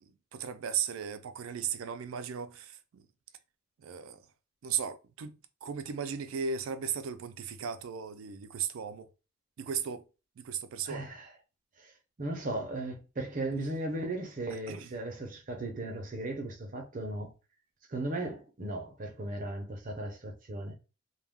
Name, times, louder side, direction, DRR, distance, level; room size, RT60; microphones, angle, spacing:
voice 1, 0.0-3.1 3.8-4.3 4.6-9.1 9.6-10.1 10.4-11.1 14.5-14.9, right 7 dB, 85° right, 0.4 m, -36 dB
voice 2, 10.8-11.3 11.8-11.9 12.2-17.3 17.9-20.7, right 2 dB, 40° right, 0.6 m, -36 dB
2.2 x 2.2 x 3.4 m
head